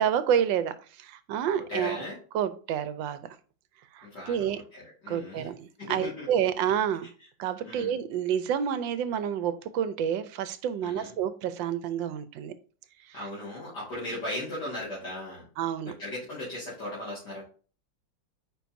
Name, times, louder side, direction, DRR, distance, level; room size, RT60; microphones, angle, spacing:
voice 1, 0.0-2.0 2.3-3.2 3.9-4.6 5.1-7.1 7.4-12.5 15.6-15.9, right 9 dB, 75° right, 1.3 m, -29 dB
voice 2, 1.7-2.2 4.0-5.5 5.8-6.3 7.6-7.9 10.8-11.1 13.1-15.5 15.8-17.4, left 1 dB, 55° left, 2.7 m, -37 dB
9.2 x 4.5 x 2.6 m
omnidirectional pair, 2.2 m